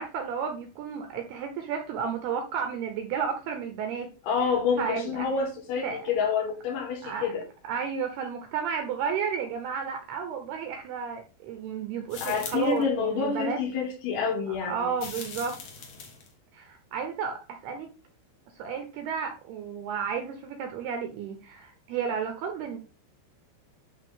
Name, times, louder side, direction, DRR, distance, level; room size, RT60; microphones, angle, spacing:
voice 1, 0.0-4.1 4.8-5.3 5.8-6.1 7.0-7.3 7.7-13.6 14.5-15.6 16.5-17.9 18.6-22.8, right 7 dB, 75° right, 2.4 m, -32 dB
voice 2, 4.2-7.4 12.2-14.9, left 6 dB, 75° left, 4.3 m, -28 dB
sound 1, 12.1-12.8 15.0-16.3, left 5 dB, 60° left, 2.0 m, -41 dB
11.0 x 3.7 x 3.7 m
omnidirectional pair, 5.6 m